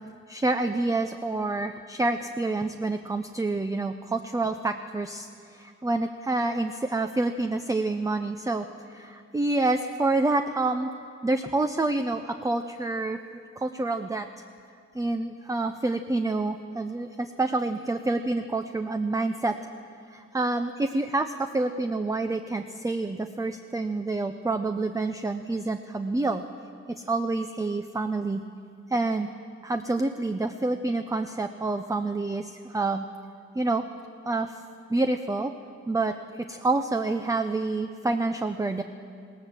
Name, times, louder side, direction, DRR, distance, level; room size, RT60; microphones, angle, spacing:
voice 1, 0.3-10.9 11.2-13.2 13.6-14.4 14.9-19.6 20.1-26.4 26.9-28.4 28.9-29.3 29.6-33.1 33.5-33.8 34.2-34.6 34.9-35.5 35.9-36.1 36.5-38.8, right 2 dB, 10° right, 8 dB, 0.5 m, -28 dB
20.0 x 17.5 x 7.4 m, 2.3 s
wide cardioid pair, 160°, 30 cm